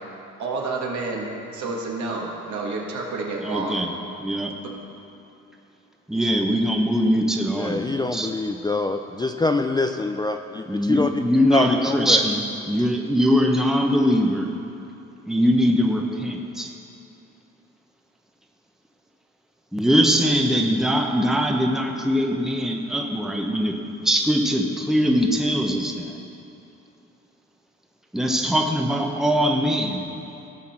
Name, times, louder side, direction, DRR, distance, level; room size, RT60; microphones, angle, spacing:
voice 1, 0.4-3.8, right 3 dB, 70° right, -2 dB, 2.0 m, -29 dB
voice 2, 3.4-3.9 4.2-4.6 6.1-8.3 10.7-14.5 15.3-16.7 19.7-23.8 24.0-26.1 28.1-30.1, equal, ahead, 2 dB, 0.9 m, -21 dB
voice 3, 7.6-11.1 11.5-12.2, left 3 dB, 15° left, 5 dB, 0.4 m, -25 dB
17.0 x 5.8 x 4.4 m, 2.8 s
cardioid pair, 90°, 30 cm